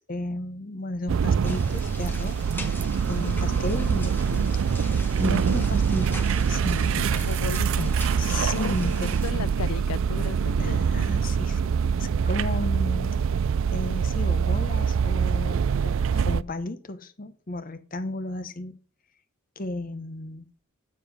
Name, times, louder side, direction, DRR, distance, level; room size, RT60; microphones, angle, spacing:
voice 1, 0.0-2.5 3.1-4.9 5.2-7.1 8.2-9.1 10.6-11.7 12.0-13.2 13.7-18.8 19.6-20.4, left 2 dB, 40° left, 0.9 m, -34 dB
sound 1, 1.1-16.4, right 6 dB, 65° right, 0.4 m, -24 dB
sound 2, 1.4-9.3, left 1 dB, 10° left, 1.2 m, -41 dB
voice 2, 3.1-3.9 7.1-7.9 8.5-10.9, left 6 dB, 85° left, 0.5 m, -35 dB
9.7 x 6.9 x 5.3 m
head